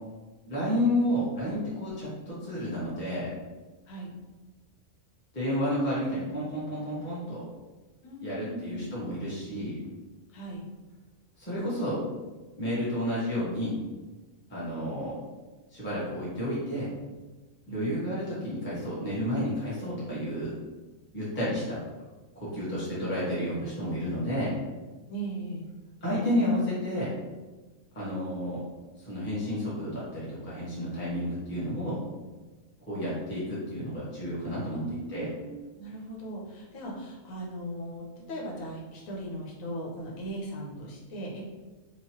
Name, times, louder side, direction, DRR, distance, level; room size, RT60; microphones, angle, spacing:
voice 1, 0.4-3.3 5.3-7.4 8.2-9.7 11.4-12.0 12.6-13.8 14.5-15.2 15.7-16.9 17.7-20.5 21.1-21.8 22.3-24.5 26.0-27.1 27.9-28.6 29.0-32.0 32.9-34.8 35.1-35.3, equal, 10° left, -9 dB, 0.8 m, -31 dB
voice 2, 8.0-8.9 10.3-10.6 17.7-18.0 25.1-25.7 34.8-41.4, right 1 dB, 80° left, -3 dB, 1.1 m, -38 dB
3.0 x 2.3 x 2.8 m, 1.2 s
omnidirectional pair, 1.4 m